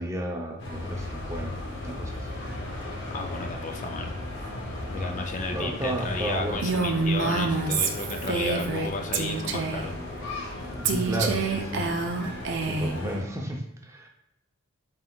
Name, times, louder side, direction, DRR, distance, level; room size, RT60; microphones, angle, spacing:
voice 1, 0.0-2.3 4.9-6.7 10.8-12.0 12.7-14.1, right 1 dB, 15° right, 0 dB, 0.6 m, -33 dB
sound 1, 0.6-13.2, left 1 dB, 60° left, 0.8 m, -36 dB
voice 2, 3.1-4.2 4.9-9.9, left 3 dB, 35° left, 4 dB, 0.4 m, -33 dB
Female speech woman speaking, 6.6-8.9 9.1-9.9 10.8-13.0, right 4 dB, 60° right, 0.5 m, -27 dB
4.5 x 3.7 x 2.3 m, 0.89 s
head